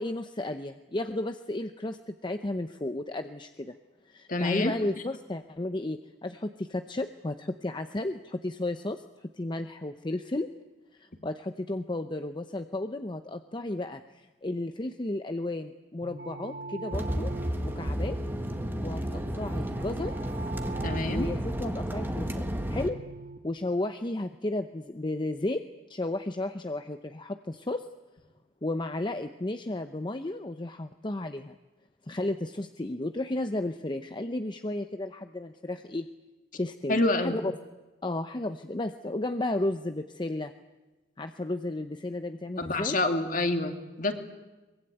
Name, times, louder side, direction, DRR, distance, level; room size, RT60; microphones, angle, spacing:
voice 1, 0.0-3.7 4.0-10.5 10.9-17.3 17.6-18.2 18.8-20.1 21.0-23.0 23.4-25.6 25.9-27.9 28.6-31.6 32.1-36.1 36.6-37.5 38.0-40.5 41.2-43.0, left 2 dB, 25° left, 8 dB, 0.7 m, -33 dB
voice 2, 4.3-4.7 20.8-21.3 36.9-37.4 42.6-44.1, left 2 dB, 50° left, 6 dB, 2.5 m, -27 dB
sound 1, 16.0-23.4, right 3 dB, 60° right, 1.7 m, -42 dB
sound 2, 16.9-22.9, equal, 10° right, 1.5 m, -32 dB
23.5 x 21.5 x 9.2 m, 1.2 s
head